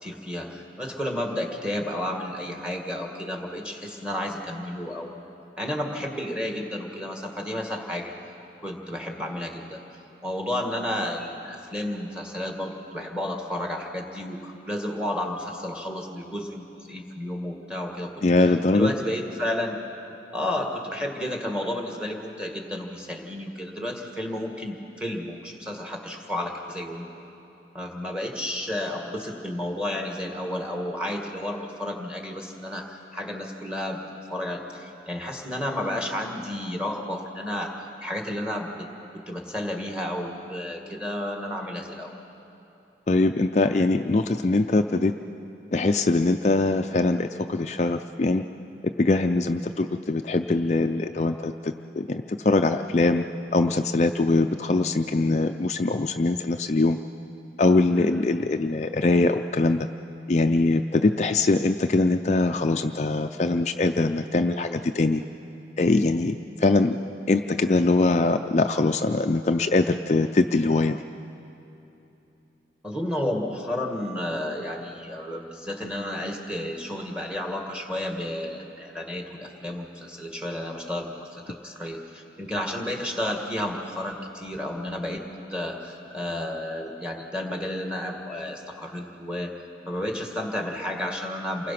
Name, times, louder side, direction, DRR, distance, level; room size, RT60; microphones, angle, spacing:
voice 1, 0.0-5.3 5.6-8.1 8.6-9.8 10.2-18.1 18.4-18.5 18.7-19.8 20.3-27.1 27.7-34.0 34.3-37.8 38.0-38.7 39.3-42.1 57.9-58.3 72.8-85.2 85.5-89.5 89.9-91.7, left 1 dB, 5° right, 1 dB, 2.0 m, -32 dB
voice 2, 18.2-18.9 43.1-45.2 45.7-48.4 48.8-53.2 53.5-57.0 57.6-59.9 60.3-65.2 65.8-67.0 67.3-71.0, left 2 dB, 40° left, 6 dB, 0.4 m, -22 dB
28.5 x 20.5 x 5.9 m, 2.9 s
head